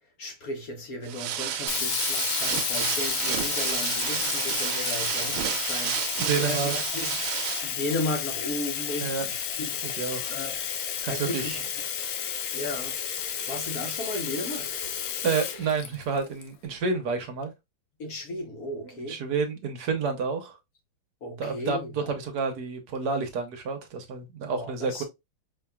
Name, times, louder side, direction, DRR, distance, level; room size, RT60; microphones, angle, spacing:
voice 1, 0.2-7.2 7.6-10.6 11.0-11.6 12.5-13.0 13.5-14.8 18.0-19.2 21.2-22.1 24.5-25.0, left 1 dB, 55° left, 1.3 m, -35 dB
sound 1, 1.0-7.7, right 10 dB, 80° right, 1.4 m, -31 dB
Sink (filling or washing), 1.7-16.4, left 8 dB, 75° left, 1.4 m, -31 dB
voice 2, 6.2-6.7 9.0-9.3 9.8-10.4 11.0-11.6 15.2-17.5 19.1-20.6 21.4-25.0, right 5 dB, 60° right, 1.2 m, -29 dB
5.1 x 2.8 x 2.3 m
omnidirectional pair, 2.2 m